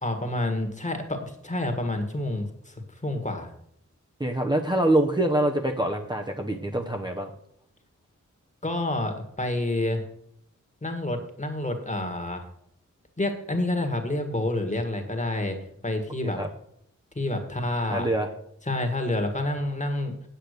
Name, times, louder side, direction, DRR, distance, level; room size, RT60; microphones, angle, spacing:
voice 1, 0.0-3.5 8.6-10.0 10.8-12.4 13.2-15.6 15.8-16.4 17.1-18.1 18.7-20.2, left 1 dB, 25° left, 5 dB, 1.7 m, -28 dB
voice 2, 4.2-7.3 16.2-16.5 17.9-18.3, right 1 dB, 15° right, 2 dB, 0.9 m, -25 dB
8.7 x 8.1 x 6.6 m, 0.71 s
wide cardioid pair, 105°, 31 cm